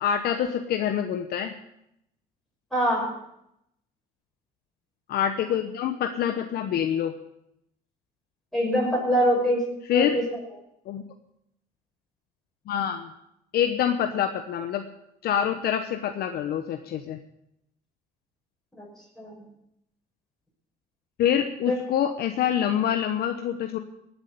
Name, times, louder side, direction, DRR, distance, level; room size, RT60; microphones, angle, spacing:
voice 1, 0.0-1.5 5.1-7.1 9.9-10.2 10.9-11.0 12.7-13.1 13.5-14.8 15.2-17.2 21.2-23.8, left 9 dB, 70° left, 6 dB, 1.0 m, -26 dB
voice 2, 2.7-3.1 8.5-9.6 9.9-10.4 18.7-18.9 19.2-19.3 21.7-21.8, equal, ahead, -4 dB, 6.2 m, -24 dB
19.0 x 8.0 x 6.9 m, 0.80 s
cardioid pair, 110°, 17 cm